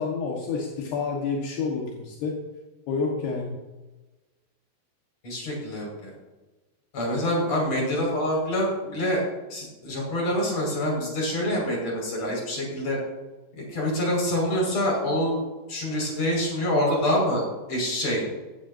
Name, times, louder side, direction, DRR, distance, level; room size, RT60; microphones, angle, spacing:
voice 1, 0.0-2.3 2.9-3.5, left 4 dB, 75° left, -3 dB, 3.8 m, -29 dB
voice 2, 5.2-6.1 6.9-9.2 9.5-13.0 13.7-15.4 15.7-18.2, equal, 40° left, -2 dB, 7.0 m, -26 dB
18.5 x 16.0 x 2.8 m, 1.2 s
omnidirectional pair, 4.9 m